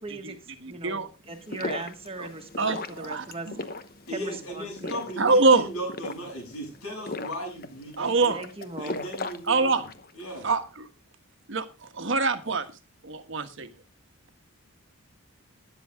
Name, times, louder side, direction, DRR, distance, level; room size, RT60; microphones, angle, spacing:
voice 1, 0.0-3.8 4.1-5.1 8.3-9.0, right 3 dB, 25° right, 6 dB, 1.5 m, -39 dB
voice 2, 0.6-1.1 2.2-2.3 2.6-3.6 5.2-5.7 8.0-8.4 9.5-9.8 10.4-10.6 11.5-11.7 11.9-12.7 13.0-13.7, right 3 dB, 55° right, 9 dB, 1.3 m, -24 dB
sound 1, 1.3-10.1, left 2 dB, 40° left, 1.0 m, -38 dB
voice 3, 4.1-8.3 8.8-9.8 10.1-10.5, equal, 80° left, 2 dB, 7.8 m, -37 dB
13.0 x 10.5 x 3.5 m, 0.30 s
head